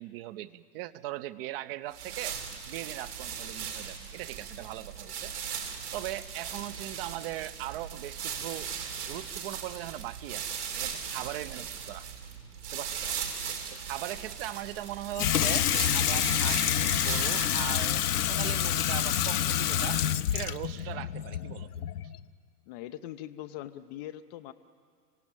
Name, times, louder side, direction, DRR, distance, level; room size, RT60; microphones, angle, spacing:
voice 1, 0.0-2.4 2.7-5.3 5.9-8.7 9.1-12.1 12.6-13.2 13.8-20.0 20.3-21.9, right 15 dB, 35° right, 16 dB, 0.8 m, -39 dB
sound 1, 1.9-18.4, right 7 dB, 70° right, 3.4 m, -38 dB
Water tap faucet / Sink (filling or washing), 15.2-22.2, left 10 dB, 70° left, 0.8 m, -28 dB
voice 2, 22.7-24.5, left 13 dB, 25° left, 8 dB, 0.5 m, -41 dB
27.5 x 17.0 x 9.0 m, 2.1 s
figure-of-eight pair, 105°, 48 cm